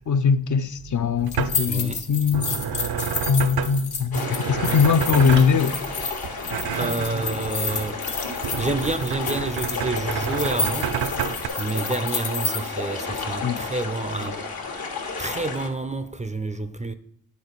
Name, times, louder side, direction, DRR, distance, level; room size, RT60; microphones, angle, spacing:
voice 1, 0.1-2.5 3.3-5.8 13.4-13.6, left 6 dB, 50° left, 0.5 m, -21 dB
sound 1, 0.8-11.5, right 8 dB, 75° right, 0.6 m, -30 dB
sound 2, 1.3-12.6, left 4 dB, 90° left, 1.6 m, -31 dB
voice 2, 1.7-2.0 6.7-8.0 8.3-10.9 11.6-14.4 15.2-16.9, right 2 dB, 20° right, 0.4 m, -29 dB
sound 3, 4.1-15.7, left 4 dB, 70° left, 1.2 m, -32 dB
9.9 x 4.2 x 4.0 m
wide cardioid pair, 80°, 38 cm